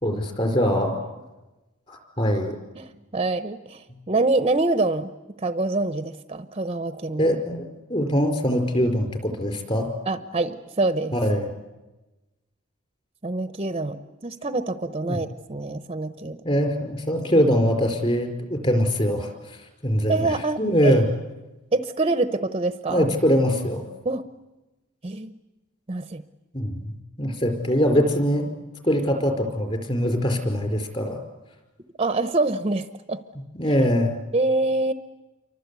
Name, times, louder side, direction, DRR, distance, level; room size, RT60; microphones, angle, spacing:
voice 1, 0.0-1.0 1.9-2.6 7.2-7.6 7.9-9.9 11.1-11.5 15.0-15.2 16.4-21.1 22.9-23.8 26.5-28.5 28.8-31.2 33.5-34.2, equal, 30° left, 6 dB, 4.6 m, -23 dB
voice 2, 2.7-5.1 5.4-7.3 10.1-11.1 13.2-16.4 20.1-21.0 21.7-23.1 24.0-24.2 25.0-25.4 25.9-26.2 32.0-33.2 34.3-34.9, right 2 dB, 30° right, 11 dB, 0.9 m, -25 dB
28.5 x 24.0 x 8.3 m, 1.1 s
head